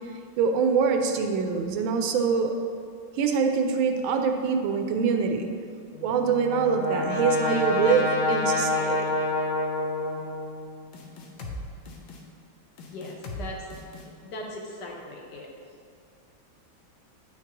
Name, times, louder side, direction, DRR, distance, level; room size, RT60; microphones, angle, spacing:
voice 1, 0.4-2.6 3.2-5.5 6.0-9.0, right 5 dB, 80° right, 5 dB, 1.4 m, -24 dB
Brass instrument, 5.9-10.7, left 2 dB, 45° left, 1.0 m, -27 dB
sound 1, 10.9-11.6 11.9-12.2 12.8-13.4 13.7-14.1, left 2 dB, 80° left, 1.6 m, -39 dB
voice 2, 12.9-13.7 14.3-15.5, left 1 dB, 65° left, -1 dB, 1.3 m, -38 dB
8.8 x 5.9 x 2.9 m, 2.4 s
omnidirectional pair, 2.2 m